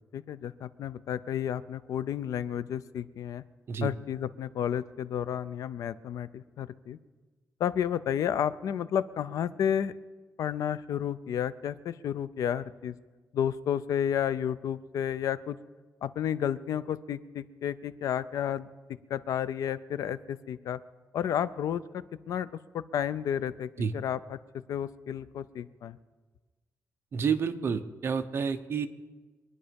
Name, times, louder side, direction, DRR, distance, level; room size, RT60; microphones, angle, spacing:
voice 1, 0.1-3.4 3.8-7.0 7.6-9.9 10.4-13.0 13.3-15.6 16.0-18.7 19.1-20.8 21.1-22.5 22.7-24.4 24.7-26.0, left 9 dB, 75° left, 15 dB, 0.5 m, -31 dB
voice 2, 27.1-28.9, right 6 dB, 45° right, 9 dB, 0.8 m, -29 dB
24.0 x 9.9 x 5.3 m, 1.3 s
wide cardioid pair, 165°, 6 cm